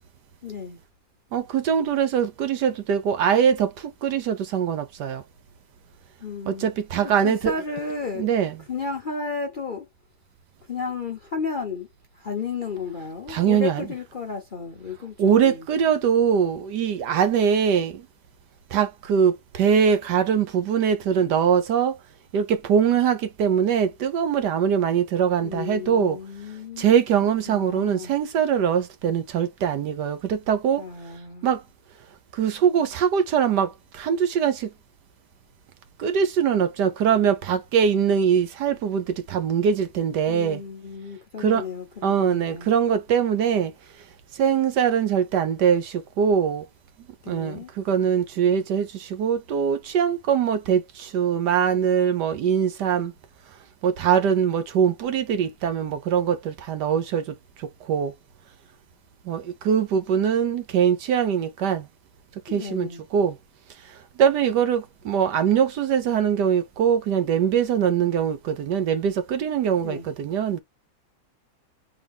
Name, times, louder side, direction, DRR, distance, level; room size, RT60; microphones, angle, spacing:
voice 1, 0.4-0.8 6.2-6.7 7.0-9.9 10.6-11.9 12.1-15.7 25.4-26.9 27.5-28.2 30.8-31.5 40.3-42.7 47.2-47.7 62.5-63.0 69.8-70.1, left 5 dB, 80° left, 0.4 m, -33 dB
voice 2, 1.3-3.7 4.0-5.2 6.5-7.5 8.2-8.5 13.3-13.8 15.2-17.9 18.7-21.9 22.3-26.2 26.8-30.8 31.4-31.6 32.4-33.7 34.0-34.6 36.0-40.6 41.4-41.6 42.0-43.7 44.4-46.6 47.3-47.6 47.9-48.9 49.2-50.8 51.1-53.1 53.8-57.2 57.9-58.1 59.3-61.8 62.5-63.3 64.2-70.6, right 8 dB, 65° right, 1.2 m, -22 dB
3.8 x 3.3 x 3.5 m
omnidirectional pair, 2.1 m